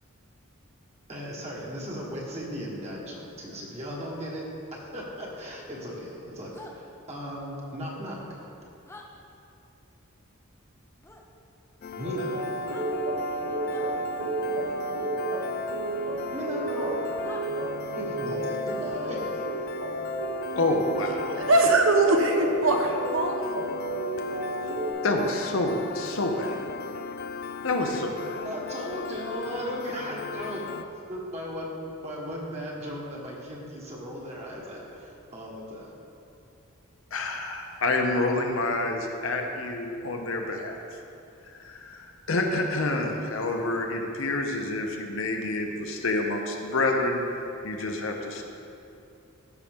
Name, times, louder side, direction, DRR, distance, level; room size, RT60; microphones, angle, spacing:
voice 1, 1.1-8.5 12.0-12.4 16.3-17.0 18.0-19.4 28.4-30.6 31.1-35.9, equal, 30° right, -4 dB, 1.4 m, -36 dB
sound 1, 6.5-6.7 8.9-9.1 11.0-11.2 12.6-12.9 13.7-13.9 16.0-16.1 17.2-17.5, left 2 dB, 10° left, 0.6 m, -46 dB
Piano, 11.8-30.8, left 5 dB, 45° left, 0.3 m, -38 dB
sound 2, 12.0-24.9, right 2 dB, 85° right, 1.1 m, -32 dB
voice 2, 20.5-21.4 25.0-26.6 27.6-28.5 37.1-40.8 41.5-48.4, left 2 dB, 65° left, 2 dB, 0.8 m, -28 dB
voice 3, 21.3-23.4, right 2 dB, 65° right, 3 dB, 0.9 m, -21 dB
14.5 x 5.7 x 3.6 m, 2.7 s
head